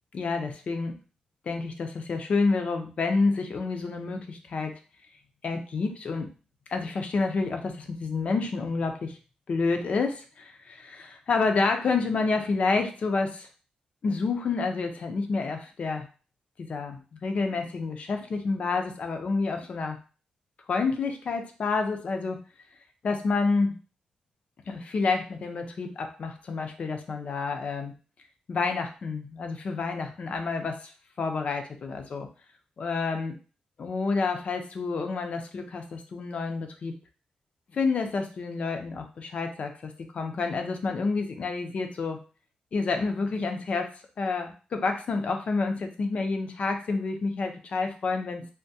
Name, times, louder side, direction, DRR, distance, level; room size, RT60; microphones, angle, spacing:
voice 1, 0.1-0.9 1.5-4.8 5.4-6.3 6.7-9.2 9.5-13.5 14.0-16.1 16.7-20.0 20.7-22.4 23.0-23.8 24.7-27.9 28.5-30.9 31.2-32.3 32.8-33.3 33.8-36.9 37.7-42.2 42.7-43.9 44.2-48.5, left 4 dB, 55° left, 5 dB, 0.5 m, -29 dB
3.4 x 2.2 x 2.7 m, 0.35 s
wide cardioid pair, 115°, 3 cm